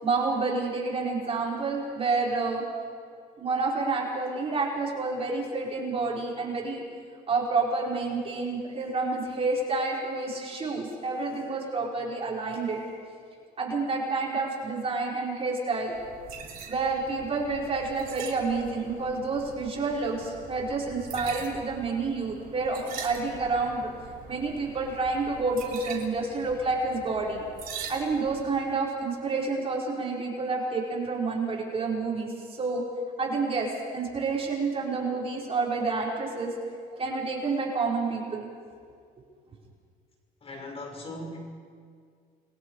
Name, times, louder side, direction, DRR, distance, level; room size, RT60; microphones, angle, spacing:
voice 1, 0.0-2.6 3.4-6.9 7.3-12.9 13.6-16.0 16.7-23.9 24.3-27.5 27.9-32.8 33.2-36.5 36.9-38.5, right 3 dB, 35° right, -3 dB, 5.3 m, -29 dB
sound 1, 15.9-28.6, right 6 dB, 60° right, 3.7 m, -43 dB
voice 2, 40.4-41.4, left 1 dB, 35° left, 1 dB, 5.9 m, -39 dB
29.0 x 22.5 x 5.0 m, 2.1 s
cardioid pair, 110°, 17 cm